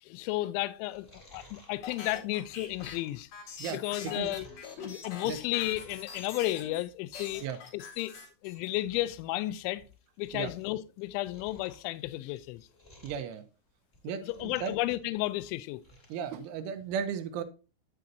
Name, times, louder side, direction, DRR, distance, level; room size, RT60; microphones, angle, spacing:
voice 1, 0.0-3.3 3.7-4.5 4.8-7.4 7.7-8.1 8.4-9.8 10.2-12.7 14.2-15.8, left 17 dB, 85° left, 2.8 m, -33 dB
Chewing mastication, 0.7-4.7 5.1-6.2 6.5-6.8 7.2-7.7 8.0-8.1 8.5-8.6 8.8-9.2 9.7-10.7 11.0-13.3 13.8-14.9 15.2-16.2 16.6-16.7, left 1 dB, 20° left, 1.9 m, -56 dB
sound 1, 1.8-6.8 7.1-8.8, left 5 dB, 55° left, 3.1 m, -43 dB
voice 2, 13.0-13.4 14.0-14.7 16.1-17.4, right 7 dB, 85° right, 3.1 m, -35 dB
8.6 x 7.9 x 2.6 m
omnidirectional pair, 5.6 m